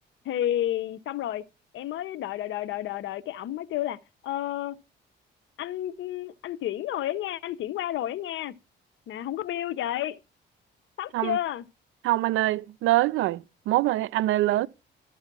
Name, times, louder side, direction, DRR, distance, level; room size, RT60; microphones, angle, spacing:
voice 1, 0.2-1.4 1.7-4.0 4.2-4.8 5.6-8.5 9.1-10.2 11.0-11.6, left 12 dB, 75° left, 0.7 m, -31 dB
voice 2, 12.0-14.7, right 16 dB, 85° right, 0.5 m, -24 dB
12.5 x 5.6 x 6.0 m
cardioid pair, 90°, 20 cm